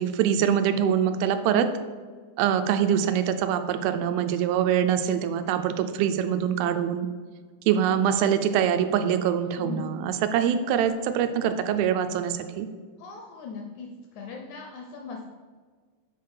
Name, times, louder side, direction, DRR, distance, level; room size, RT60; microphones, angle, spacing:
voice 1, 0.0-1.7 2.4-7.1 7.7-12.7, right 9 dB, 90° right, 9 dB, 2.4 m, -24 dB
voice 2, 9.4-9.9 13.0-13.9 14.1-15.2, left 5 dB, 80° left, 1 dB, 1.7 m, -39 dB
7.5 x 3.8 x 5.5 m, 1.5 s
omnidirectional pair, 4.2 m